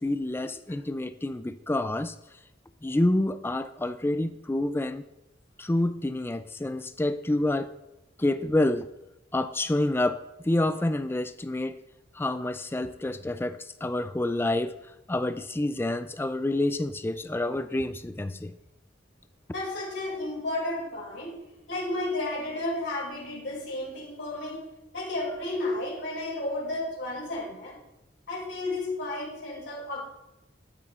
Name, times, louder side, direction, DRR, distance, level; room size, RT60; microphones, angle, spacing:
voice 1, 0.0-2.1 2.8-5.0 5.6-7.7 8.2-8.9 9.3-11.8 12.1-14.8 15.1-18.5, left 1 dB, 10° left, 12 dB, 0.3 m, -28 dB
voice 2, 19.5-21.4 21.7-24.6 24.9-27.8 28.3-30.1, left 2 dB, 70° left, -3 dB, 2.7 m, -32 dB
12.0 x 8.9 x 2.5 m, 0.93 s
head